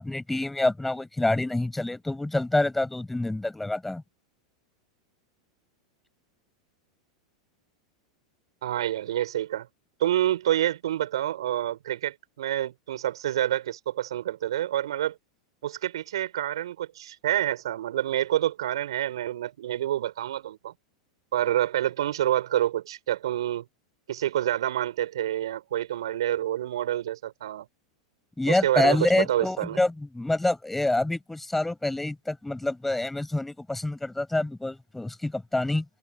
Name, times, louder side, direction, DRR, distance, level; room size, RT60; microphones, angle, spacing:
voice 1, 0.0-4.0 28.4-35.8, left 2 dB, 5° left, 6.7 m, -27 dB
voice 2, 8.6-9.7 10.0-15.2 15.6-20.7 21.3-23.7 24.1-27.7 28.5-29.8, right 12 dB, 70° right, 4.4 m, -28 dB
figure-of-eight pair, 95°, 3 cm